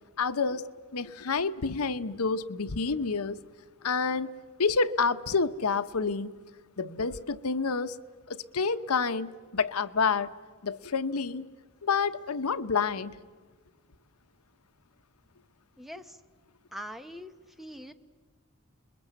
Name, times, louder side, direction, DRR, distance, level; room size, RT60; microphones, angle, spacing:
voice 1, 0.2-3.4 3.8-4.3 4.6-6.3 6.8-8.0 8.3-10.3 10.6-11.5 11.8-13.2, left 4 dB, 90° left, 13 dB, 0.9 m, -28 dB
voice 2, 15.8-16.2 16.7-17.3 17.6-17.9, equal, ahead, 8 dB, 1.0 m, -42 dB
29.0 x 21.5 x 8.1 m, 1.5 s
head